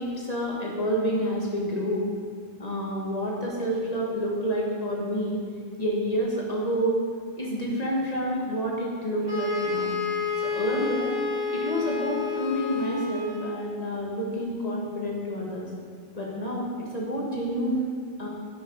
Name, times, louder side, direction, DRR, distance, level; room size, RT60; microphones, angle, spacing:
voice 1, 0.0-2.0 2.6-5.4 5.8-7.0 7.4-9.9 10.4-11.1 11.5-15.7 16.1-17.9 18.2-18.3, equal, 35° left, -3 dB, 2.1 m, -28 dB
sound 1, 9.3-13.7, left 4 dB, 20° right, 1.4 m, -29 dB
10.5 x 7.8 x 4.8 m, 2.1 s
omnidirectional pair, 1.1 m